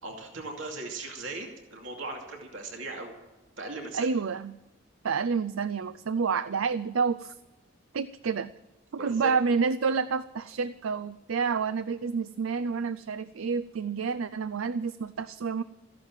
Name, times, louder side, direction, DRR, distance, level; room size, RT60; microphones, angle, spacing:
voice 1, 0.0-3.1 3.6-4.0 8.9-9.3, right 3 dB, 75° right, 1 dB, 2.6 m, -38 dB
voice 2, 3.9-4.6 5.0-7.4 7.9-8.5 8.9-15.6, right 5 dB, 90° right, 15 dB, 0.5 m, -29 dB
15.0 x 11.0 x 7.4 m, 1.1 s
head